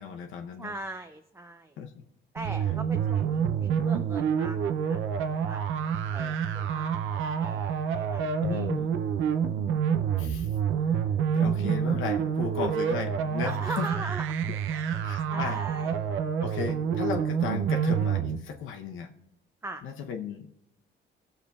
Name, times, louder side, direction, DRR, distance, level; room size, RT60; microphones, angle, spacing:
voice 1, 0.0-0.7 1.8-2.0 8.4-8.9 10.2-10.5 10.9-11.0 11.3-13.9 15.0-15.6 16.4-19.1 19.8-20.5, left 7 dB, 80° left, 3 dB, 0.8 m, -35 dB
voice 2, 0.6-1.8 2.3-6.9 7.3-7.7 7.9-8.7 9.3-9.4 13.4-14.4 14.7-16.1 19.6-19.8, right 2 dB, 15° right, 6 dB, 0.5 m, -41 dB
sound 1, 2.4-18.4, right 7 dB, 80° right, 0.5 m, -28 dB
18.5 x 6.8 x 2.3 m, 0.82 s
cardioid pair, 90°, 20 cm